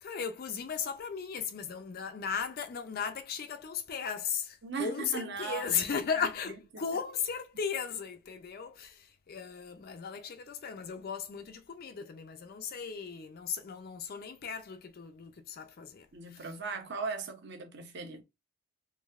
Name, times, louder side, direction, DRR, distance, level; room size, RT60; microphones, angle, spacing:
voice 1, 0.0-16.4, left 6 dB, 40° left, 0.4 m, -36 dB
voice 2, 4.6-6.3 6.7-6.8 16.1-18.2, right 5 dB, 50° right, 0.8 m, -38 dB
3.9 x 2.8 x 2.3 m
head